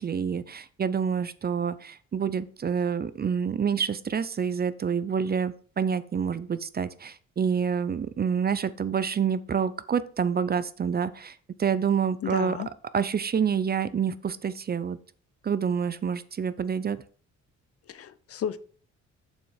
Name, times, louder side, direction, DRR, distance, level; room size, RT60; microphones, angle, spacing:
voice 1, 0.0-12.6 12.9-15.0 15.4-17.0, right 7 dB, 30° right, 15 dB, 0.6 m, -27 dB
voice 2, 12.2-12.7 17.9-18.6, left 9 dB, 50° left, 15 dB, 0.7 m, -32 dB
7.4 x 6.1 x 4.7 m, 0.43 s
cardioid pair, 90°, 30 cm